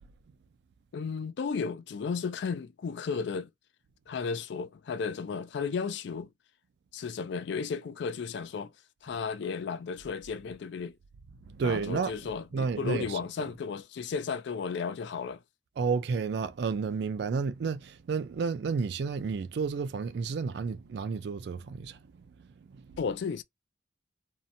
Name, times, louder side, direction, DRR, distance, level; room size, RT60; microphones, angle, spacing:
voice 1, 0.9-3.5 4.1-6.3 6.9-8.7 9.0-11.0 11.6-15.4 23.0-23.4, left 5 dB, 65° left, 0.3 m, -34 dB
voice 2, 11.5-12.2 12.5-13.2 15.8-22.0 22.4-23.0, right 5 dB, 60° right, 0.3 m, -31 dB
2.7 x 2.1 x 2.6 m
head